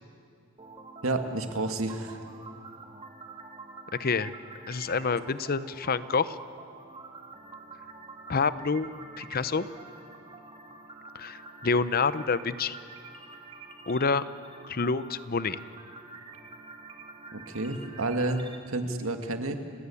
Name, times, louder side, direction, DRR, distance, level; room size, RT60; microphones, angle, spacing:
sound 1, 0.6-18.6, right 3 dB, 25° right, 1.7 m, -47 dB
voice 1, 1.0-2.2 17.3-19.6, right 2 dB, 75° right, 6 dB, 1.9 m, -30 dB
voice 2, 4.0-4.3 4.7-6.4 8.3-8.9 9.2-9.7 11.1-12.8 13.9-14.2 14.7-15.6, left 4 dB, 45° left, 15 dB, 0.7 m, -27 dB
30.0 x 16.5 x 8.4 m, 2.3 s
head